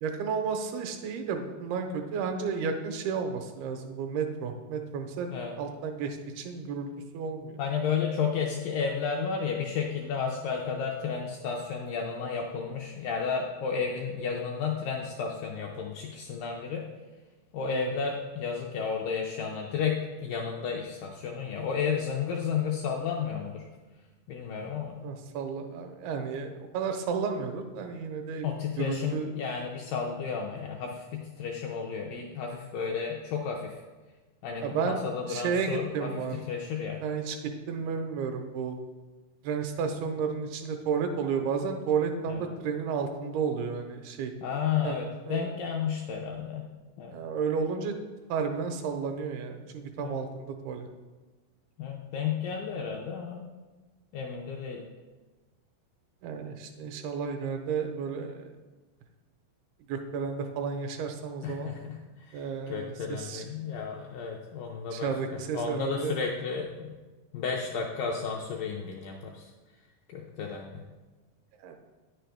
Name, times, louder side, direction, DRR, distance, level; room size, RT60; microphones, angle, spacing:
voice 1, 0.0-5.3 5.6-7.6 17.7-17.9 25.0-28.5 28.8-29.3 34.6-35.0 35.3-36.4 37.0-37.4 37.7-38.8 39.4-44.3 44.8-45.0 45.3-45.5 47.1-47.9 48.3-50.9 56.2-58.5 59.9-61.7 62.3-63.4 64.9-66.2 71.6-71.8, right 6 dB, 85° right, 5 dB, 2.6 m, -32 dB
voice 2, 7.6-16.8 17.5-23.6 24.3-25.0 28.4-33.8 34.4-37.0 42.3-42.4 44.4-46.7 47.0-47.2 50.0-50.2 51.8-53.4 54.1-54.8 61.4-62.0 62.3-62.4 62.7-67.0 67.3-69.5 70.1-70.8, left 6 dB, 80° left, 0 dB, 2.0 m, -32 dB
9.6 x 6.4 x 3.4 m, 1.2 s
omnidirectional pair, 4.6 m